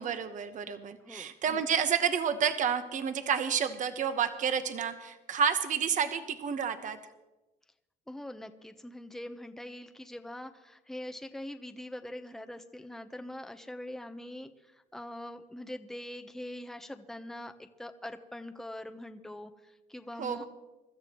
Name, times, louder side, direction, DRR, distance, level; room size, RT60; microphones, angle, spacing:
voice 1, 0.0-7.0 20.2-20.5, right 7 dB, 50° right, 9 dB, 1.1 m, -30 dB
voice 2, 1.0-1.3 8.1-20.5, left 1 dB, ahead, 7 dB, 0.9 m, -43 dB
24.0 x 13.5 x 3.1 m, 1.1 s
cardioid pair, 110°, 17 cm